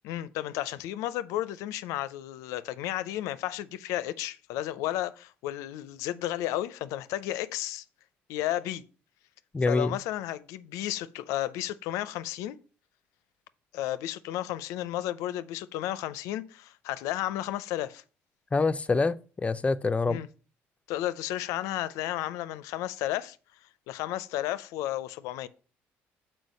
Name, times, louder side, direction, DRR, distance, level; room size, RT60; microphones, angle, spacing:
voice 1, 0.0-7.8 8.3-8.8 9.6-12.6 13.7-18.0 20.1-20.3 20.9-23.4 23.9-25.5, left 13 dB, 80° left, 0.5 m, -33 dB
voice 2, 9.5-10.0 18.5-20.2, left 3 dB, 25° left, 0.5 m, -26 dB
6.3 x 4.5 x 5.4 m
supercardioid pair, 75°, 5 cm